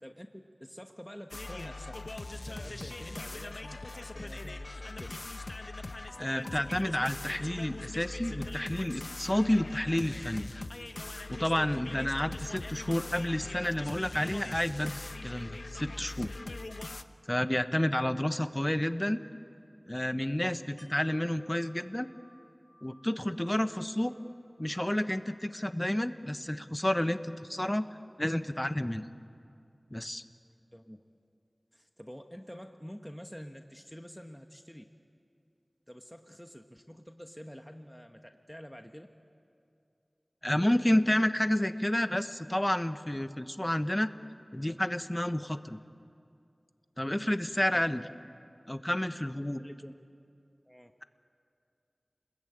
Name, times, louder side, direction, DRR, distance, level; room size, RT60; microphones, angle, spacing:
voice 1, 0.0-2.1 2.3-5.3 20.3-20.6 23.4-23.6 30.7-31.1 31.7-34.8 35.9-39.1 47.7-47.8 49.6-49.9 50.6-50.9, equal, 5° left, 5 dB, 1.2 m, -48 dB
sound 1, 1.3-17.0, left 2 dB, 75° left, 0.9 m, -41 dB
voice 2, 6.2-10.5 11.3-16.3 17.3-19.2 19.8-22.1 22.8-24.1 24.6-27.9 28.2-29.1 29.9-30.2 40.4-44.1 44.5-45.8 47.0-48.0 48.7-49.6, left 1 dB, 20° left, 10 dB, 1.1 m, -30 dB
Wind chime, 20.8-26.6 27.0-27.1, left 1 dB, 40° left, 3.7 m, -64 dB
29.0 x 21.0 x 8.8 m, 2.5 s
wide cardioid pair, 45°, 0 cm